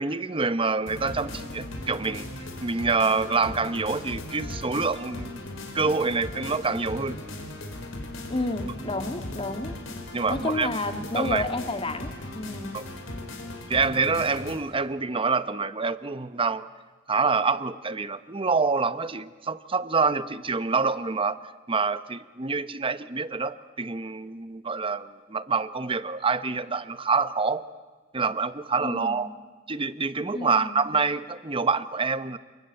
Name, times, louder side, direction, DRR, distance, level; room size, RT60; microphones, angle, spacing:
voice 1, 0.0-2.3 2.6-5.4 5.7-7.2 10.1-10.7 11.2-11.4 12.7-12.9 13.7-16.7 17.1-21.4 21.7-27.6 28.1-29.3 29.7-32.4, right 4 dB, 25° right, 13 dB, 0.9 m, -26 dB
sound 1, 0.9-14.6, left 1 dB, 85° left, 4.8 m, -38 dB
voice 2, 8.3-9.8 10.3-12.9 28.8-29.3 30.3-30.8, left 2 dB, 30° left, 7 dB, 1.9 m, -31 dB
29.0 x 21.0 x 9.1 m, 1.4 s
head